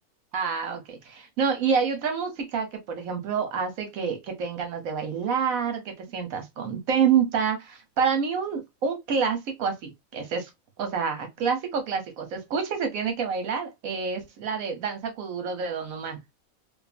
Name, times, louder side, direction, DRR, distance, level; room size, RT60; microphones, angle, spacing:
voice 1, 0.3-10.5 10.8-16.2, right 6 dB, 75° right, 1.2 m, -28 dB
2.5 x 2.5 x 2.3 m
omnidirectional pair, 1.5 m